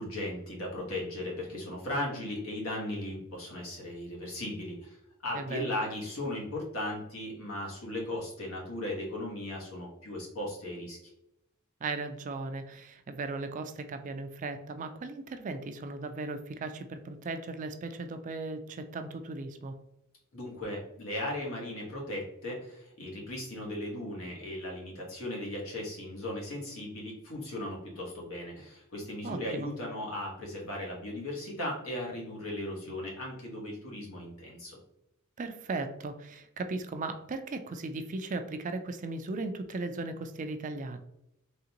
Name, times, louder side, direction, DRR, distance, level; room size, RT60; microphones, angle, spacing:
voice 1, 0.0-5.0 5.2-11.1 20.3-34.8, left 1 dB, 70° left, -2 dB, 1.4 m, -37 dB
voice 2, 5.3-5.7 11.8-19.8 29.2-29.7 35.4-41.0, right 3 dB, 35° right, 8 dB, 0.3 m, -37 dB
3.8 x 3.4 x 2.9 m, 0.82 s
head